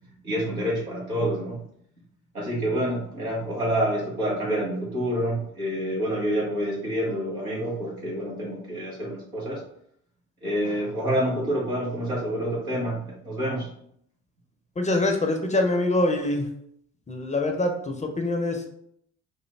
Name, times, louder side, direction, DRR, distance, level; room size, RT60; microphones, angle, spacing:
voice 1, 0.2-1.6 2.3-9.6 10.4-13.7, equal, 90° right, -6 dB, 0.8 m, -27 dB
voice 2, 14.8-16.5 17.1-18.7, left 2 dB, 15° left, 3 dB, 0.5 m, -24 dB
3.4 x 2.1 x 3.2 m, 0.69 s
figure-of-eight pair, 45°, 42 cm